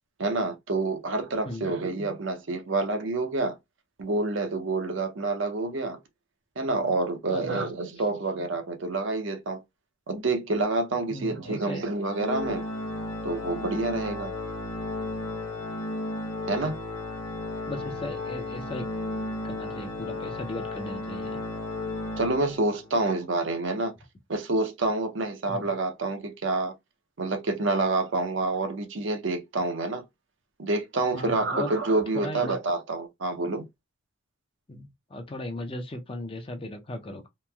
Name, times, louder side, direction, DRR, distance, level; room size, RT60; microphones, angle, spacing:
voice 1, 0.2-3.6 4.0-6.0 6.6-9.6 10.1-12.6 13.2-14.3 16.5-16.8 22.2-23.9 24.3-26.7 27.2-30.0 30.6-33.6, right 3 dB, 65° right, 0.6 m, -28 dB
voice 2, 7.3-7.7 8.1-8.2 11.1-11.8 17.7-18.9 19.4-21.4 25.5-25.7 31.1-31.7 32.1-32.6 34.7-37.3, left 1 dB, 25° left, 0.5 m, -37 dB
Organ, 12.1-23.0, left 2 dB, 85° left, 0.7 m, -34 dB
3.0 x 2.5 x 2.2 m
head